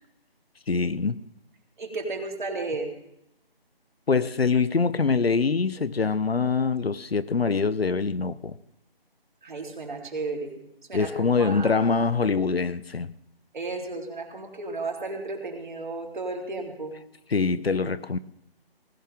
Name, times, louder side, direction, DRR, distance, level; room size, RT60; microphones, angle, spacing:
voice 1, 0.7-1.2 4.1-8.6 10.9-13.1 17.3-18.2, left 4 dB, 75° left, 1.0 m, -24 dB
voice 2, 1.8-2.9 9.4-10.6 10.9-11.1 11.4-11.7 13.5-16.9, right 3 dB, 50° right, 3.9 m, -33 dB
19.5 x 18.5 x 3.7 m
figure-of-eight pair, 160°, 30 cm